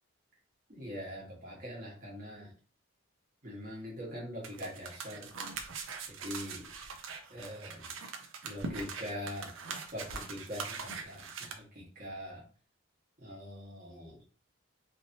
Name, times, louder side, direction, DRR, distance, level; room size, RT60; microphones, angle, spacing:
voice 1, 0.7-2.5 3.4-5.3 6.1-6.7 7.3-7.9 8.4-12.4 13.2-14.2, equal, 40° right, -4 dB, 1.2 m, -43 dB
sound 1, 4.4-11.5, right 5 dB, 70° right, 0.5 m, -42 dB
3.1 x 2.7 x 2.6 m, 0.40 s
head